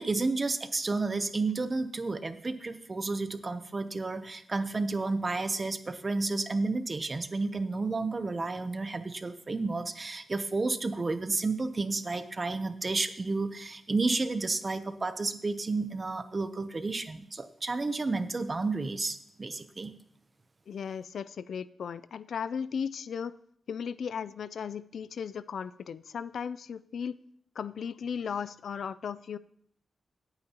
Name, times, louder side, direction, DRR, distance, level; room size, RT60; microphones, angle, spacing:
voice 1, 0.0-19.9, right 3 dB, 30° right, 10 dB, 0.7 m, -31 dB
voice 2, 20.7-23.3 23.7-27.2 27.6-29.4, left 7 dB, 75° left, 16 dB, 0.3 m, -36 dB
17.5 x 8.9 x 2.9 m, 0.66 s
wide cardioid pair, 150°, 0 cm